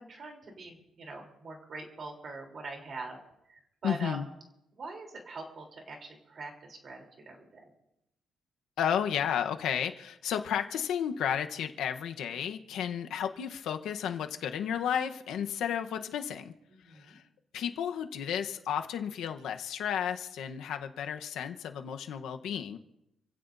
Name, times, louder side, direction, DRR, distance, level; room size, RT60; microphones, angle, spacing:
voice 1, 0.0-3.2 3.5-4.2 4.7-7.6 16.7-17.2, right 3 dB, 35° right, 2 dB, 3.4 m, -43 dB
voice 2, 3.8-4.2 8.8-16.5 16.9-17.2 17.5-22.8, left 8 dB, 75° left, 6 dB, 1.0 m, -33 dB
29.5 x 16.0 x 2.7 m, 0.84 s
cardioid pair, 180°, 0 cm